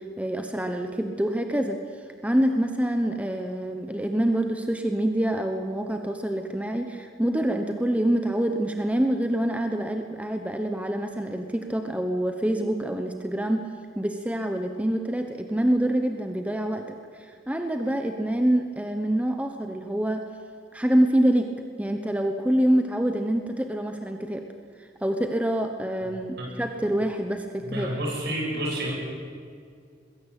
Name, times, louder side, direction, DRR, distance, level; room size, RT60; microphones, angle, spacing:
voice 1, 0.0-1.8 2.2-13.6 14.0-20.2 20.7-21.5 21.8-24.4 24.8-27.9, right 1 dB, 10° right, 5 dB, 1.1 m, -26 dB
voice 2, 27.6-28.9, right 1 dB, 65° right, -2 dB, 7.8 m, -29 dB
21.5 x 16.5 x 8.4 m, 2.2 s
head